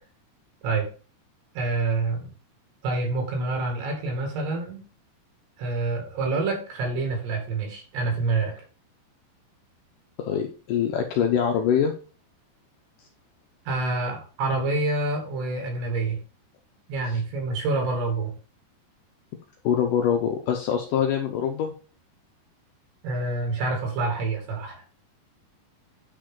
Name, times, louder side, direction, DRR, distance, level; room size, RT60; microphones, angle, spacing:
voice 1, 1.6-2.3 2.8-4.8 5.6-8.5 13.7-16.2 16.9-18.3 23.0-24.8, right 3 dB, 70° right, 2 dB, 4.2 m, -27 dB
voice 2, 10.2-11.9 17.1-17.2 19.6-21.7, left 8 dB, 85° left, 3 dB, 1.8 m, -24 dB
9.6 x 5.2 x 3.8 m, 0.35 s
omnidirectional pair, 5.0 m